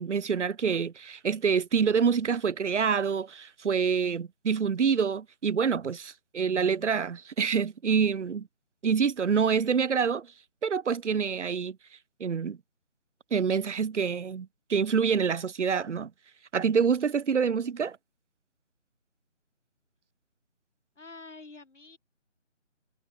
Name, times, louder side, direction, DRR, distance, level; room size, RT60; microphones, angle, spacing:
voice 1, 0.0-8.5 8.8-10.3 10.6-11.8 12.2-12.6 13.3-16.1 16.5-18.0, right 6 dB, 65° right, 0.6 m, -26 dB
voice 2, 21.0-22.0, left 3 dB, 65° left, 7.0 m, -47 dB
figure-of-eight pair, 175°, 38 cm